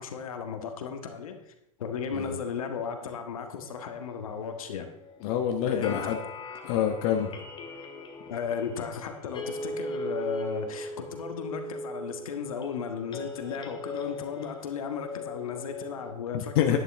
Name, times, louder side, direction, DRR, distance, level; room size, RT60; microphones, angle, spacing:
voice 1, 0.0-1.5 1.8-4.9 5.7-6.3 8.3-16.8, left 6 dB, 75° left, 1.6 m, -35 dB
sound 1, 3.6-16.1, left 1 dB, 25° left, 2.2 m, -40 dB
voice 2, 5.2-6.2 6.6-7.3 16.3-16.8, left 9 dB, 55° left, 1.2 m, -26 dB
11.0 x 11.0 x 3.6 m
hypercardioid pair, 90°, 18 cm